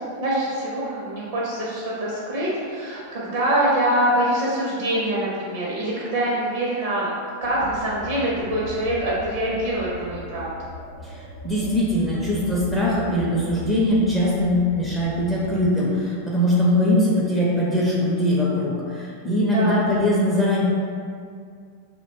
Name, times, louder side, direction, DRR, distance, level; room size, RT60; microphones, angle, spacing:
voice 1, 0.2-7.1 7.4-10.5 19.4-19.8, right 1 dB, 50° right, -5 dB, 0.5 m, -24 dB
sound 1, 7.4-15.7, left 2 dB, 55° left, 0.6 m, -39 dB
voice 2, 11.0-20.6, left 1 dB, 5° left, -7 dB, 0.5 m, -21 dB
2.4 x 2.1 x 3.2 m, 2.2 s
figure-of-eight pair, 90°, 0 cm